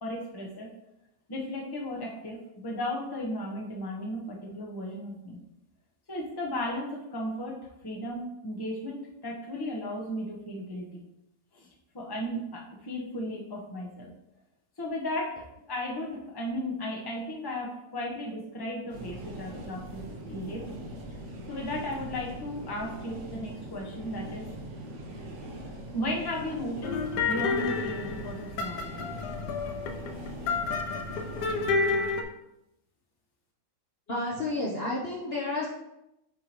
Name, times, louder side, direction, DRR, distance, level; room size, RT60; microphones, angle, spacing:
voice 1, 0.0-0.7 1.3-2.4 2.6-5.4 6.1-7.6 7.8-11.0 11.5-11.7 11.9-14.1 14.8-20.6 21.5-24.4 25.7-27.0 27.2-29.1, left 1 dB, 15° left, -2 dB, 0.9 m, -35 dB
sound 1, 18.9-31.7, right 1 dB, 50° right, 1.1 m, -41 dB
sound 2, 26.8-32.2, left 4 dB, 85° left, 1.3 m, -30 dB
voice 2, 34.1-35.7, left 2 dB, 45° left, -5 dB, 1.0 m, -31 dB
8.9 x 3.7 x 3.0 m, 0.85 s
omnidirectional pair, 1.7 m